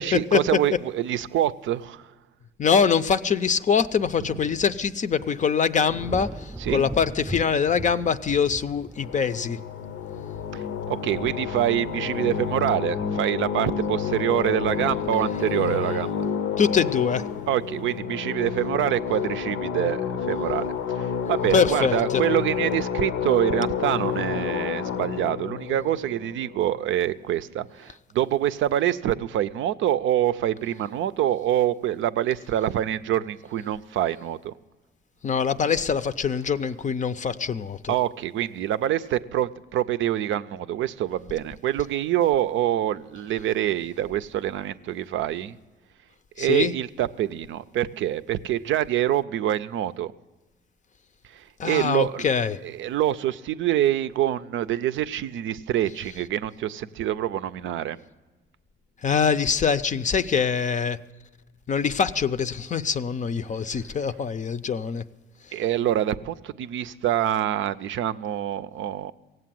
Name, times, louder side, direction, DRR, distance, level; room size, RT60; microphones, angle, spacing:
voice 1, 0.0-2.1 6.6-6.9 10.5-16.2 17.5-34.5 37.9-45.6 46.4-50.1 51.3-52.2 52.6-58.0 65.5-69.1, right 12 dB, 75° right, 13 dB, 0.5 m, -26 dB
voice 2, 2.6-9.6 16.6-17.2 21.5-22.2 35.2-37.9 46.4-46.7 51.6-52.6 59.0-61.0 61.7-65.0, left 6 dB, 40° left, 12 dB, 0.5 m, -24 dB
sound 1, 5.8-17.1 17.6-18.0, right 1 dB, 10° right, 0.6 m, -42 dB
sound 2, 9.0-27.1, left 7 dB, 80° left, 0.7 m, -29 dB
17.5 x 7.8 x 7.6 m, 1.3 s
cardioid pair, 90°, 20 cm